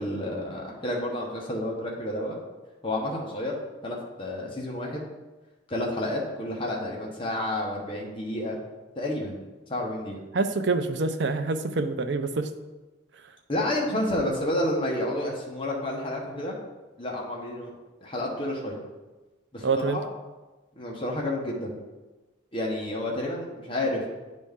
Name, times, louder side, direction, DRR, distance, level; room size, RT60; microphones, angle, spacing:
voice 1, 0.0-2.4 2.8-3.5 3.8-5.0 5.7-8.6 9.0-9.4 9.7-10.2 13.5-16.6 17.0-17.7 18.0-18.8 19.5-20.0 20.8-21.7 22.5-24.1, left 1 dB, 25° left, -2 dB, 1.1 m, -30 dB
voice 2, 10.3-12.5 19.6-20.0, right 3 dB, 55° right, 9 dB, 0.5 m, -26 dB
9.3 x 4.1 x 3.6 m, 1.1 s
head